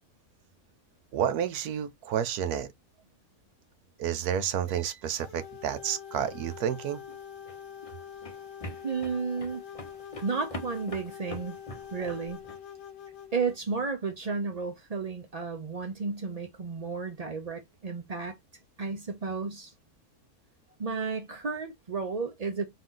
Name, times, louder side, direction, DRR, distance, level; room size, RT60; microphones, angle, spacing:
voice 1, 1.1-2.7 4.0-7.0, right 9 dB, 80° right, 1.2 m, -30 dB
sound 1, 5.2-13.6, left 8 dB, 65° left, 0.9 m, -45 dB
sound 2, 7.1-12.6, left 1 dB, 30° left, 0.6 m, -44 dB
voice 2, 8.8-9.6 10.2-11.6 11.9-12.4 13.3-18.4 18.8-19.7 20.8-22.6, right 4 dB, 60° right, 0.4 m, -32 dB
4.1 x 2.6 x 3.7 m
omnidirectional pair, 1.6 m